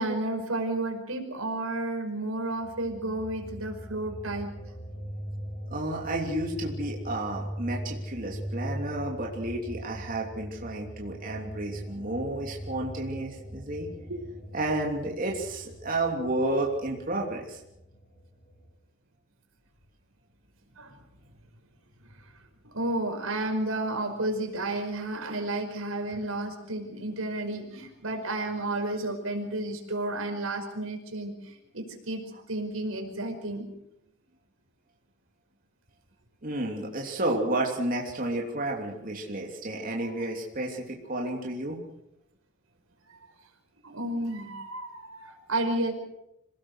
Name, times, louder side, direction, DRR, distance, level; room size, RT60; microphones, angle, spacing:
voice 1, 0.0-4.6 14.1-14.2 20.8-20.9 22.2-22.3 22.6-33.6 40.0-40.2 43.1-43.2 43.8-45.9, right 2 dB, 85° right, 4 dB, 5.2 m, -32 dB
sound 1, 2.6-18.7, equal, 30° left, 7.5 m, -40 dB
voice 2, 5.7-13.9 14.5-17.6 36.4-41.8, right 1 dB, 40° right, -1 dB, 3.2 m, -31 dB
27.0 x 18.5 x 6.5 m, 0.83 s
head